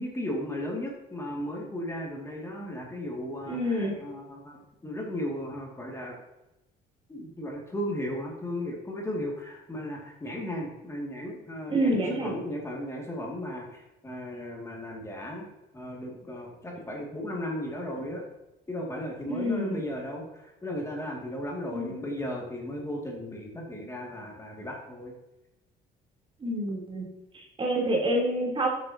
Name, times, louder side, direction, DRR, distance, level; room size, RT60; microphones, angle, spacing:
voice 1, 0.0-6.2 7.1-15.5 15.7-18.3 18.7-25.1, left 1 dB, 15° left, -2 dB, 2.3 m, -35 dB
voice 2, 3.4-4.0 11.7-12.3 19.3-19.8 21.7-21.9 26.4-28.7, right 1 dB, 30° right, -2 dB, 3.3 m, -28 dB
13.0 x 8.1 x 2.8 m, 0.98 s
cardioid pair, 110°, 17 cm